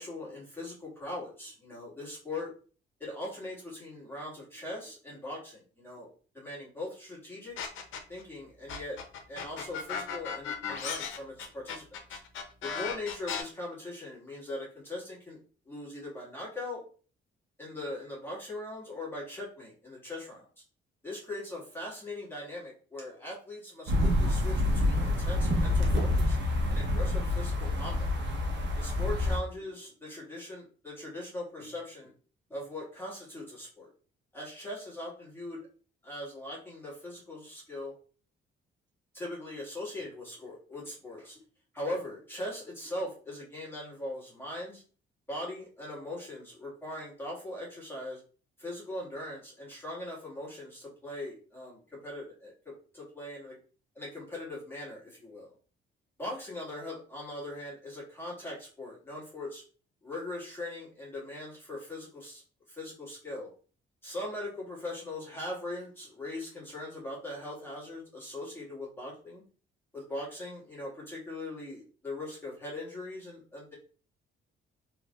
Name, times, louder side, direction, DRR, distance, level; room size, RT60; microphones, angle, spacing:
voice 1, 0.0-2.5 3.0-6.1 6.3-7.6 8.1-9.0 9.3-12.2 12.6-15.4 15.7-16.8 17.6-20.5 21.0-26.4 26.7-28.1 28.8-32.1 32.5-33.9 34.3-35.6 36.0-37.9 39.1-41.4 41.7-44.8 45.3-48.2 48.6-53.6 53.9-55.5 56.2-59.6 60.0-62.4 62.7-63.5 64.0-69.4 69.9-73.7, left 1 dB, 10° left, -6 dB, 1.7 m, -40 dB
sound 1, 7.6-8.2 8.7-13.4, left 6 dB, 80° left, 0.7 m, -36 dB
sound 2, 23.9-29.4, left 1 dB, 70° right, 1.0 m, -27 dB
3.3 x 3.2 x 2.4 m, 0.39 s
cardioid pair, 90°, 20 cm